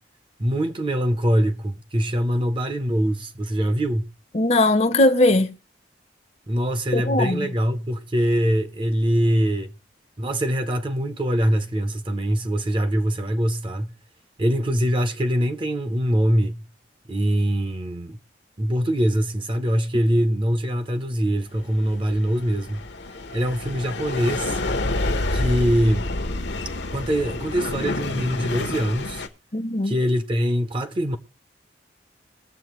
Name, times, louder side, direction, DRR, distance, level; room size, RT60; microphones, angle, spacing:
voice 1, 0.4-4.1 6.5-9.7 10.2-13.9 14.4-16.6 17.1-18.2 18.6-22.8 23.3-24.6 25.3-26.1 26.9-29.2 29.8-31.2, equal, 25° right, 0.6 m, -23 dB
voice 2, 4.3-5.5 6.9-7.5 29.5-30.0, left 2 dB, 35° left, 0.7 m, -19 dB
sound 1, 21.7-29.3, left 2 dB, 70° left, 0.9 m, -28 dB
21.5 x 7.2 x 3.0 m
head